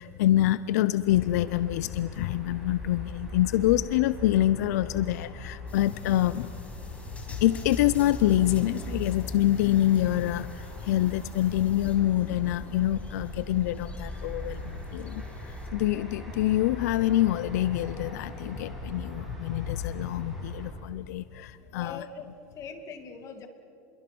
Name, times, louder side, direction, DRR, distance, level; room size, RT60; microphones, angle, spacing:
voice 1, 0.0-6.6 7.3-22.0, left 14 dB, 85° left, 15 dB, 0.6 m, -26 dB
sound 1, 1.1-20.7, left 1 dB, ahead, 7.0 m, -40 dB
sound 2, 5.7-15.7, left 3 dB, 15° left, 2.7 m, -51 dB
voice 2, 21.7-23.5, left 5 dB, 40° left, 6 dB, 2.5 m, -41 dB
29.5 x 22.5 x 6.1 m, 2.7 s
supercardioid pair, 140°, 9 cm